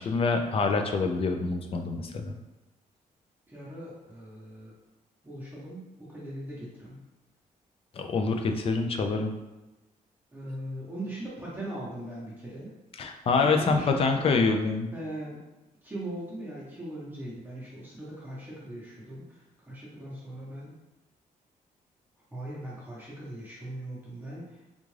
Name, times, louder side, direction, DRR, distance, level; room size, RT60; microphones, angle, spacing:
voice 1, 0.0-2.4 7.9-9.3 13.0-14.9, left 4 dB, 40° left, 5 dB, 0.4 m, -26 dB
voice 2, 3.5-4.7 5.2-7.0 10.3-12.7 13.4-14.5 14.9-15.4 15.8-20.7 22.3-24.6, right 1 dB, 15° right, -7 dB, 0.9 m, -40 dB
3.5 x 2.5 x 3.2 m, 1.0 s
cardioid pair, 145°, 14 cm